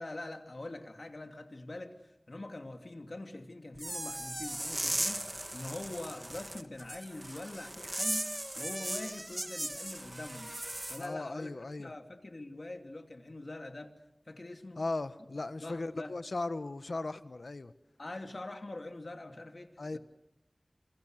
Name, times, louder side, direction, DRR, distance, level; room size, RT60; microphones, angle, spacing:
voice 1, 0.0-2.0 2.3-10.5 10.9-13.9 14.3-14.8 15.2-15.3 15.6-16.2 18.0-20.0, left 2 dB, 65° left, 2.9 m, -44 dB
sound 1, 3.8-11.1, right 1 dB, 30° right, 1.8 m, -37 dB
voice 2, 11.0-11.9 14.8-17.7 19.8-20.0, left 2 dB, 85° left, 1.3 m, -37 dB
28.0 x 28.0 x 6.6 m
wide cardioid pair, 55°, 0 cm